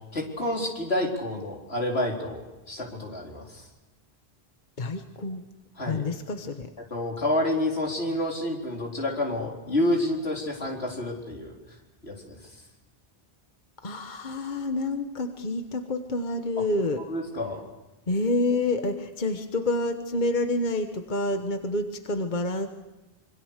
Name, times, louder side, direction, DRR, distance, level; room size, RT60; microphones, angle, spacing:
voice 1, 0.1-3.6 5.8-6.1 6.9-11.6 12.0-12.4 17.1-17.6, left 1 dB, 80° left, -1 dB, 4.5 m, -29 dB
voice 2, 4.8-5.4 5.9-6.7 13.8-17.0 18.1-22.7, left 2 dB, 45° left, 6 dB, 1.4 m, -28 dB
26.5 x 24.0 x 6.6 m, 1.1 s
omnidirectional pair, 1.1 m